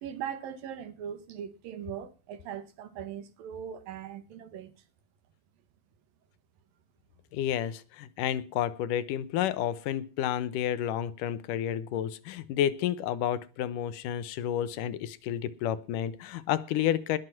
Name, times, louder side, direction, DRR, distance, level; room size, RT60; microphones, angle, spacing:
voice 1, 0.0-4.7, right 9 dB, 85° right, 3.4 m, -40 dB
voice 2, 7.3-17.2, left 10 dB, 75° left, 2.5 m, -30 dB
20.0 x 7.9 x 5.8 m
omnidirectional pair, 3.9 m